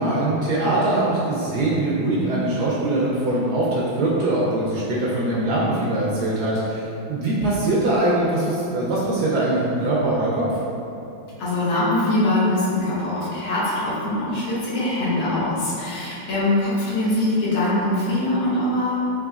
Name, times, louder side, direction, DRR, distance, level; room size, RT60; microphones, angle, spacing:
voice 1, 0.0-10.4, right 2 dB, 75° right, -7 dB, 1.0 m, -22 dB
voice 2, 11.4-19.0, left 1 dB, 85° left, -9 dB, 1.9 m, -22 dB
4.9 x 3.0 x 2.4 m, 2.8 s
omnidirectional pair, 2.2 m